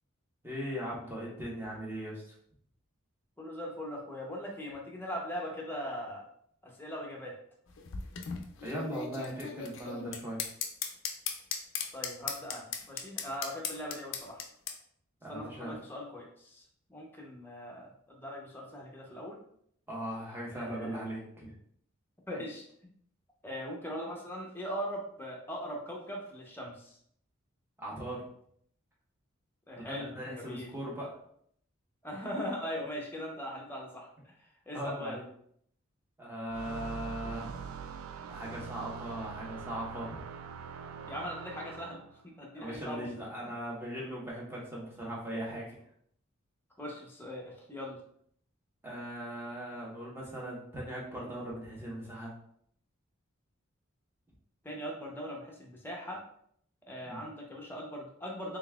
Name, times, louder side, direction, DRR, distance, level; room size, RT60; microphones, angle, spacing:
voice 1, 0.4-2.3 8.6-10.4 15.2-15.8 19.9-21.5 27.8-28.2 29.9-31.2 34.7-35.2 36.2-37.6 38.3-40.2 42.5-45.8 48.8-52.3 57.1-57.2, equal, 10° right, -5 dB, 1.1 m, -39 dB
voice 2, 3.4-6.3 6.6-7.4 11.9-14.4 15.3-16.6 16.9-19.4 20.5-21.0 22.3-22.6 23.4-27.0 29.7-30.7 32.0-34.1 34.7-35.2 41.1-42.0 42.4-43.1 46.8-48.0 54.6-56.2 56.9-58.6, equal, 10° left, -2 dB, 0.7 m, -40 dB
sound 1, 7.7-14.7, left 6 dB, 65° left, 0.5 m, -37 dB
sound 2, 36.5-42.2, right 6 dB, 85° right, 0.3 m, -43 dB
3.9 x 3.6 x 2.3 m, 0.66 s
head